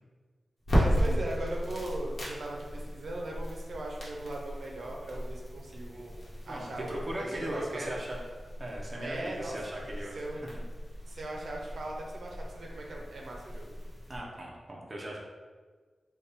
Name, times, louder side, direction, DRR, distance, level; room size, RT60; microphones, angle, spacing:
sound 1, 0.6-14.2, equal, 55° left, 1.0 m, -35 dB
voice 1, 0.7-7.9 9.0-9.6 10.1-10.4 11.1-13.7, right 1 dB, 70° right, -2 dB, 0.5 m, -39 dB
voice 2, 6.5-8.2 8.6-10.5 14.1-15.2, right 1 dB, 25° right, -3 dB, 0.6 m, -38 dB
3.5 x 2.2 x 3.9 m, 1.5 s
wide cardioid pair, 165°, 0 cm